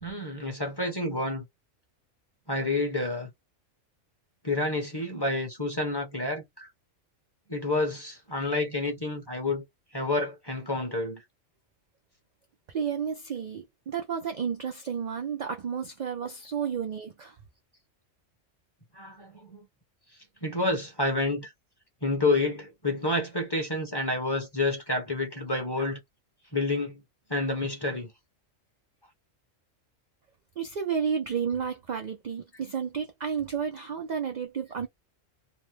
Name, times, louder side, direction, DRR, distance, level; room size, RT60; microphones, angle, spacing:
voice 1, 0.0-1.4 2.5-3.3 4.4-6.7 7.5-9.6 9.9-11.2 18.9-19.6 20.4-21.5 22.0-26.0 26.5-27.0 27.3-28.1, left 2 dB, 20° left, 0.9 m, -29 dB
voice 2, 12.7-17.4 30.6-34.9, right 7 dB, 60° right, 0.4 m, -31 dB
2.8 x 2.1 x 3.1 m
omnidirectional pair, 1.3 m